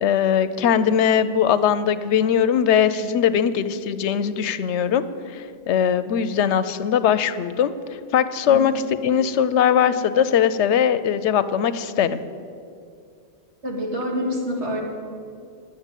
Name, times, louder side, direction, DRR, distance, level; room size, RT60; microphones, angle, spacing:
voice 1, 0.0-5.0 5.3-7.7 8.1-8.7 9.0-12.2, left 8 dB, 85° left, 13 dB, 0.9 m, -20 dB
voice 2, 13.6-14.8, equal, 80° right, -1 dB, 2.3 m, -26 dB
10.5 x 6.9 x 9.0 m, 2.4 s
omnidirectional pair, 1.1 m